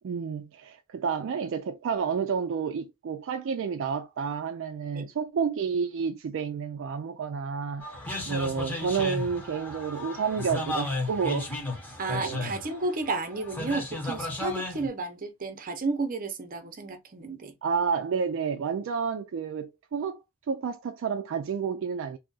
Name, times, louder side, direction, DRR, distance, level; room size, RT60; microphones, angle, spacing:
voice 1, 0.0-7.8 8.3-11.5 12.1-12.5 17.6-20.2 20.5-22.2, right 6 dB, 65° right, 0.3 m, -30 dB
sound 1, 7.8-14.9, left 2 dB, 10° left, 0.9 m, -34 dB
voice 2, 12.0-17.5, right 3 dB, 45° right, 0.7 m, -32 dB
2.7 x 2.4 x 3.8 m
head